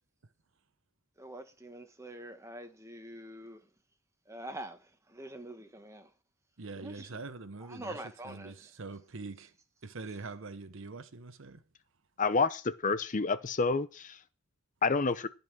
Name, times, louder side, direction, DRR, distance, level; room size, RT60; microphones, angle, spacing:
voice 1, 1.2-3.7 4.3-6.1 6.7-7.1 7.6-8.7, right 1 dB, 15° right, 1.5 m, -45 dB
voice 2, 6.6-8.0 8.2-9.5 9.8-11.6, right 3 dB, 60° right, 0.9 m, -43 dB
voice 3, 12.2-14.2 14.8-15.3, left 4 dB, 35° left, 0.6 m, -29 dB
15.5 x 5.5 x 6.2 m
head